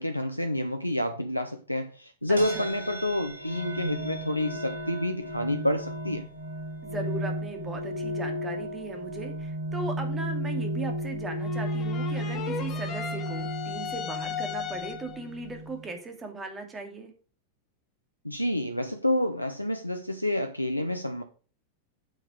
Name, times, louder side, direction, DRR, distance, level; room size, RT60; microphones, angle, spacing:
voice 1, 0.0-6.3 18.2-21.2, left 1 dB, 90° left, 0.6 m, -29 dB
voice 2, 2.3-2.7 6.8-17.1, right 2 dB, 20° right, 2.5 m, -38 dB
sound 1, 2.4-15.9, equal, 80° right, 3.2 m, -34 dB
sound 2, 11.4-15.3, left 7 dB, 30° left, 1.6 m, -36 dB
9.0 x 5.8 x 5.1 m
figure-of-eight pair, 90°, 0 cm